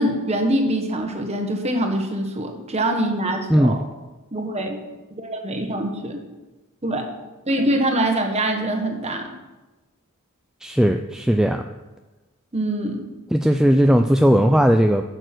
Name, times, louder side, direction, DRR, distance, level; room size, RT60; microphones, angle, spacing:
voice 1, 0.0-3.8 4.3-4.8 5.1-6.2 6.8-7.1 7.5-9.3 12.5-13.1, right 1 dB, 30° right, 4 dB, 1.4 m, -24 dB
voice 2, 10.6-11.6 13.3-15.0, equal, 5° right, 5 dB, 0.3 m, -17 dB
11.0 x 6.8 x 6.1 m, 1.1 s
head